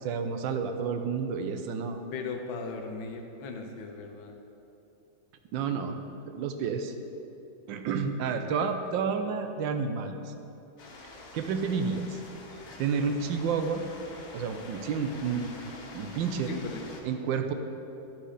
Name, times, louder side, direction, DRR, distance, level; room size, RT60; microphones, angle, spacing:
voice 1, 0.0-2.0 5.5-6.0 6.3-6.9 7.7-10.3 11.3-12.2 12.8-13.8 14.3-16.5 17.0-17.5, right 6 dB, 80° right, 7 dB, 1.3 m, -30 dB
voice 2, 2.1-4.3 8.3-8.9 15.1-15.5 16.4-16.8, left 4 dB, 80° left, 4 dB, 1.5 m, -38 dB
sound 1, 10.8-17.0, left 2 dB, 60° left, 1.6 m, -46 dB
12.0 x 4.4 x 4.9 m, 2.8 s
omnidirectional pair, 2.1 m